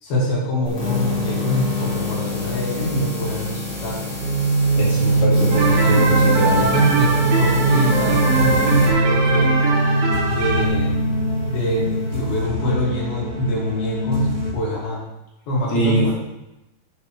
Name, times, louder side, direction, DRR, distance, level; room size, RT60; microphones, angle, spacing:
voice 1, 0.0-4.2 6.6-9.7 10.3-11.0 11.5-15.0 15.5-16.1, equal, 90° left, -4 dB, 4.1 m, -24 dB
sound 1, 0.6-8.9, left 3 dB, 20° left, 1.1 m, -27 dB
sound 2, 4.2-14.5, right 2 dB, 20° right, 1.3 m, -21 dB
voice 2, 4.8-6.7 15.7-16.1, equal, 55° left, -6 dB, 3.6 m, -22 dB
sound 3, 5.5-10.7, right 4 dB, 65° right, 2.7 m, -23 dB
11.5 x 7.9 x 3.3 m, 0.96 s
omnidirectional pair, 4.1 m